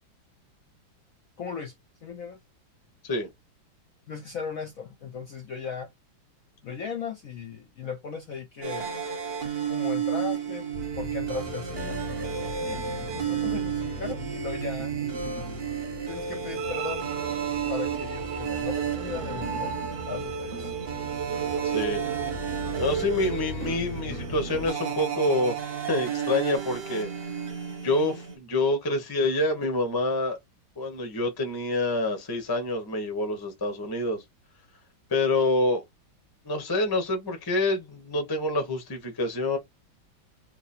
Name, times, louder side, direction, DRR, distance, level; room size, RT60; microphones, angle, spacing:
voice 1, 1.4-1.7 2.0-2.4 4.1-5.9 6.6-9.0 9.7-10.7 11.0-12.0 12.6-14.9 16.1-17.1 17.7-20.7, left 6 dB, 60° left, 0.9 m, -37 dB
sound 1, 8.6-28.4, right 7 dB, 40° right, 0.9 m, -32 dB
sound 2, 10.7-24.7, equal, 60° right, 0.5 m, -39 dB
sound 3, 16.6-23.6, right 6 dB, 75° right, 1.1 m, -35 dB
voice 2, 21.6-22.1 22.8-25.5 25.9-27.1 27.8-30.4 30.8-34.2 35.1-35.8 36.4-39.6, left 2 dB, 25° left, 0.5 m, -27 dB
3.0 x 2.7 x 4.2 m
omnidirectional pair, 2.1 m